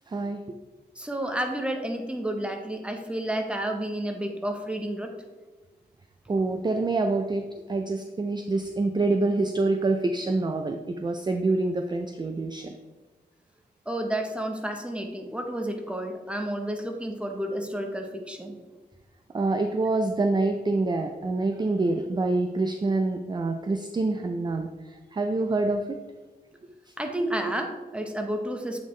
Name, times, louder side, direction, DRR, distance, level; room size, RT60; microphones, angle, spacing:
voice 1, 0.1-0.4 6.3-12.7 19.3-24.7 25.1-26.0, right 2 dB, 25° right, 6 dB, 0.4 m, -26 dB
voice 2, 1.0-5.1 6.4-6.5 13.9-18.5 27.0-28.8, right 1 dB, 5° right, 4 dB, 0.8 m, -31 dB
8.2 x 3.7 x 3.2 m, 1.2 s
cardioid pair, 75°, 17 cm